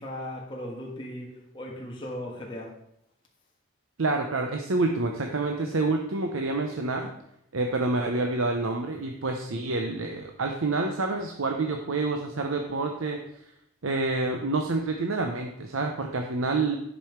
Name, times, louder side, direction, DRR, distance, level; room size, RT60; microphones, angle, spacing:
voice 1, 0.0-2.7, left 1 dB, 25° left, -2 dB, 1.5 m, -37 dB
voice 2, 4.0-7.1 7.5-13.2 13.8-16.8, right 3 dB, 75° right, 3 dB, 0.8 m, -28 dB
10.5 x 5.4 x 4.6 m, 0.77 s
head